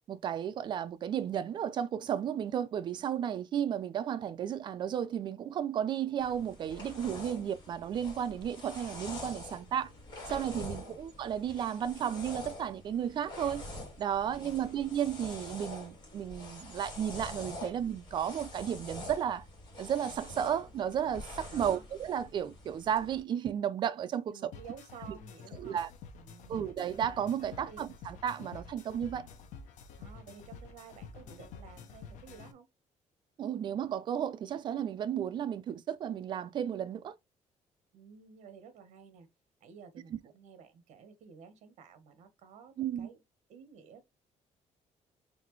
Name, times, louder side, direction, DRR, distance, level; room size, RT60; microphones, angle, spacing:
voice 1, 0.1-9.9 10.3-13.6 14.0-19.4 19.8-24.5 25.1-25.2 25.6-25.9 26.5-29.3 33.4-37.1 40.1-40.2 42.8-43.1, right 9 dB, 40° right, 0.4 m, -33 dB
Paddle hairbrush through hair, 6.2-23.2, left 2 dB, 35° left, 2.1 m, -46 dB
voice 2, 14.2-14.8 21.5-21.8 24.3-25.8 26.2-26.7 27.5-27.8 30.0-32.7 37.9-39.3 39.6-43.2 43.5-44.1, right 6 dB, 65° right, 1.1 m, -53 dB
sound 1, 24.5-32.5, left 5 dB, 75° left, 0.7 m, -49 dB
4.2 x 3.2 x 3.1 m
cardioid pair, 180°, 13 cm